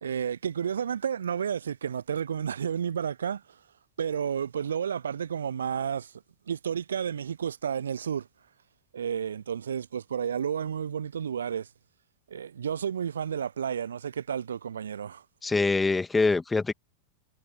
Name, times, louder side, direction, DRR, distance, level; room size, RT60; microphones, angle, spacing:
voice 1, 0.0-3.4 4.0-6.1 6.5-8.3 8.9-11.7 12.3-15.2, right 8 dB, 70° right, 0.9 m, -31 dB
voice 2, 15.4-16.7, left 3 dB, 10° left, 2.3 m, -24 dB
figure-of-eight pair, 90°, 0 cm